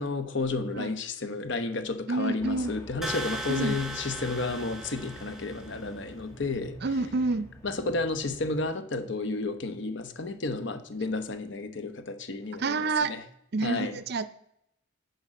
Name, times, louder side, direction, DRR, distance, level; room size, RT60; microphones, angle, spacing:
voice 1, 0.0-6.8 7.6-13.2 13.6-14.0, left 3 dB, 60° left, 9 dB, 0.9 m, -32 dB
voice 2, 2.1-2.7 3.5-3.7 6.8-7.5 12.6-13.1 13.5-14.3, right 3 dB, 50° right, 13 dB, 0.5 m, -28 dB
sound 1, 2.4-8.7, equal, 15° left, 1.5 m, -47 dB
sound 2, 3.0-5.9, right 1 dB, ahead, 0.9 m, -37 dB
10.5 x 5.4 x 4.9 m, 0.78 s
head